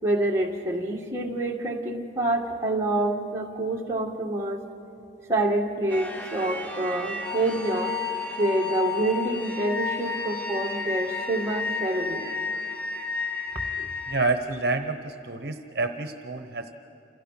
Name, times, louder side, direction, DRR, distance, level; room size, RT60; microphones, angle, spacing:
voice 1, 0.0-4.6 5.3-8.0 8.4-12.4 13.8-13.9, right 1 dB, 15° right, -2 dB, 1.9 m, -27 dB
sound 1, 5.9-14.3, left 4 dB, 10° left, 1.4 m, -32 dB
voice 2, 14.1-16.7, right 3 dB, 60° right, 8 dB, 0.9 m, -28 dB
28.5 x 28.0 x 5.9 m, 2.9 s
head